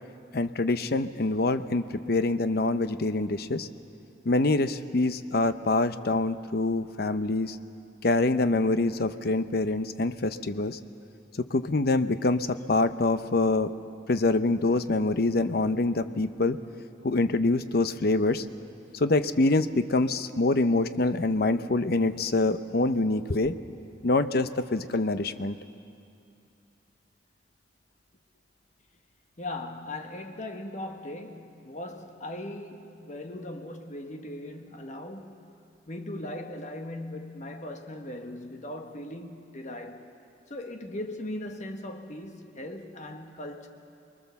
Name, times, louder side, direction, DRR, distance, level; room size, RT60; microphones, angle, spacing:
voice 1, 0.3-3.7 4.2-7.6 8.0-10.8 11.4-13.7 14.1-16.6 17.0-18.4 18.9-23.6 24.0-25.6, left 2 dB, 55° left, 0.7 m, -25 dB
voice 2, 29.4-35.5 35.9-40.1 40.5-43.7, left 1 dB, 40° left, 1.3 m, -39 dB
24.5 x 21.5 x 7.0 m
head